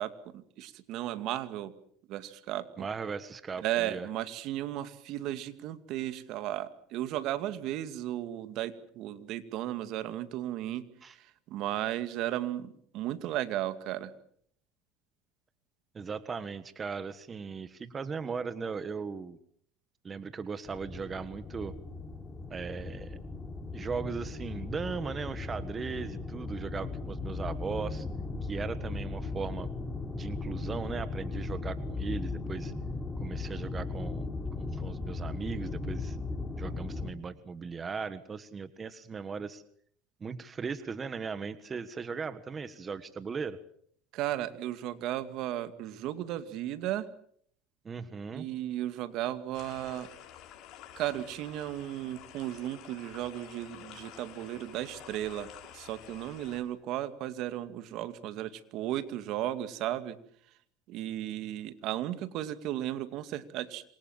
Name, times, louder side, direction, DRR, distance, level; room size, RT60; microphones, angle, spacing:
voice 1, 0.0-1.7 2.1-2.9 3.6-14.1 44.1-47.1 48.3-50.1 51.0-60.2 60.9-63.8, right 13 dB, 60° right, 12 dB, 2.3 m, -35 dB
voice 2, 2.8-4.1 11.0-11.1 15.9-19.4 20.0-21.7 22.5-23.2 23.7-28.1 28.4-29.7 30.1-32.7 33.2-34.3 34.6-36.2 36.6-39.6 40.2-43.6 47.8-48.5, right 5 dB, 25° right, 13 dB, 1.5 m, -38 dB
sound 1, 20.6-37.1, left 3 dB, 15° left, 4.1 m, -37 dB
sound 2, 49.5-56.6, left 11 dB, 60° left, 7.1 m, -50 dB
27.0 x 22.5 x 7.4 m, 0.64 s
supercardioid pair, 115°, 0 cm